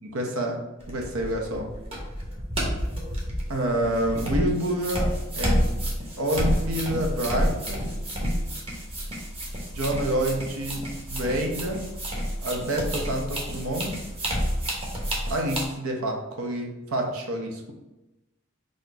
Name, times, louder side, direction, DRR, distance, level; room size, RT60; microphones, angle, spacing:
voice 1, 0.0-1.7 3.5-5.7 6.2-7.9 9.7-11.9 12.4-14.0 15.3-17.7, right 1 dB, 85° right, 1 dB, 0.8 m, -28 dB
sound 1, 0.8-15.6, equal, 25° right, 1.0 m, -29 dB
4.3 x 2.6 x 4.5 m, 1.0 s
head